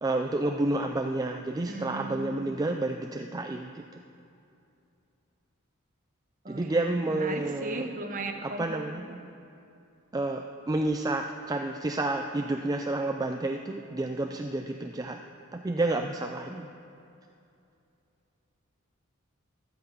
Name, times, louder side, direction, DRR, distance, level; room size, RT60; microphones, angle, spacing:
voice 1, 0.0-4.0 6.5-7.9 8.4-9.0 10.1-15.2 15.5-16.7, right 2 dB, 15° right, 4 dB, 0.4 m, -30 dB
voice 2, 1.7-2.7 6.4-6.8 7.1-9.2, right 2 dB, 40° right, 4 dB, 1.2 m, -37 dB
15.0 x 11.0 x 5.4 m, 2.6 s
head